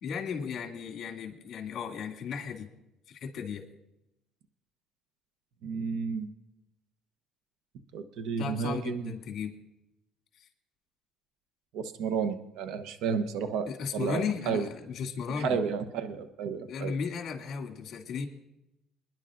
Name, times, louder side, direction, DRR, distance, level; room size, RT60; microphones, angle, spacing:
voice 1, 0.0-2.7 3.1-3.6 8.4-9.5 10.4-10.5 13.7-15.6 16.7-18.3, left 6 dB, 50° left, 2 dB, 2.4 m, -35 dB
voice 2, 5.6-6.3 7.9-9.1 11.7-13.7 13.9-14.7 15.4-16.9, right 6 dB, 75° right, 9 dB, 0.9 m, -32 dB
27.0 x 10.5 x 2.6 m, 0.89 s
cardioid pair, 135°, 0 cm